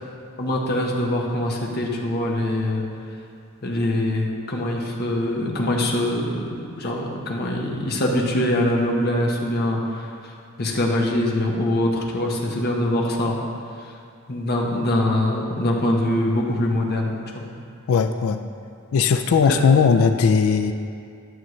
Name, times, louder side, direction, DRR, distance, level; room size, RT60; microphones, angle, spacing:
voice 1, 0.4-2.8 3.6-6.3 6.8-13.4 13.8-13.9 14.3-17.5 19.4-19.8, left 1 dB, 50° left, -1 dB, 1.1 m, -23 dB
voice 2, 17.9-18.4 18.9-20.7, left 5 dB, 70° left, 8 dB, 0.4 m, -18 dB
11.5 x 6.5 x 3.2 m, 2.4 s
head